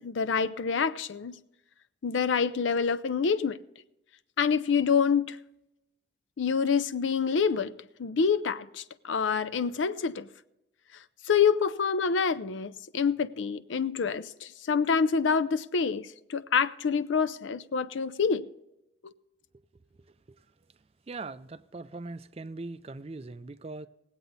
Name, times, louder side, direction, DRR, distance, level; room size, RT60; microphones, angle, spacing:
voice 1, 0.0-1.4 2.0-3.6 4.4-5.4 6.4-7.7 8.0-10.3 11.3-18.5 19.0-19.1, left 6 dB, 80° left, 0.5 m, -27 dB
voice 2, 20.0-20.5 21.1-23.9, right 3 dB, 30° right, 0.4 m, -41 dB
19.5 x 8.1 x 4.0 m
head